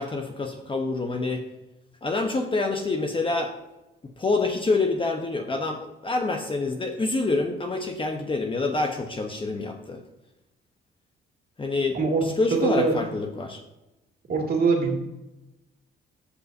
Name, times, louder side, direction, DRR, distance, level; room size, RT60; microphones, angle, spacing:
voice 1, 0.0-1.4 2.0-3.5 4.2-10.0 11.6-13.6, left 3 dB, 25° left, 3 dB, 1.0 m, -27 dB
voice 2, 12.5-12.9 14.3-15.0, right 4 dB, 50° right, 0 dB, 2.5 m, -22 dB
14.5 x 5.5 x 2.7 m, 0.98 s
cardioid pair, 90°, 20 cm